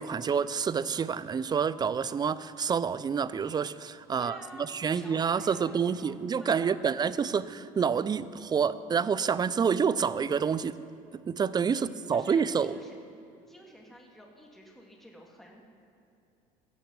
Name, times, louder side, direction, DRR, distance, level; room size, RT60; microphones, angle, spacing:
voice 1, 0.0-10.8 11.1-12.8, right 6 dB, 25° right, 16 dB, 0.5 m, -28 dB
voice 2, 4.2-6.8 11.7-11.8 12.1-13.0 13.5-15.6, equal, ahead, -1 dB, 2.0 m, -50 dB
15.5 x 7.1 x 8.1 m, 2.6 s
supercardioid pair, 95°, 17 cm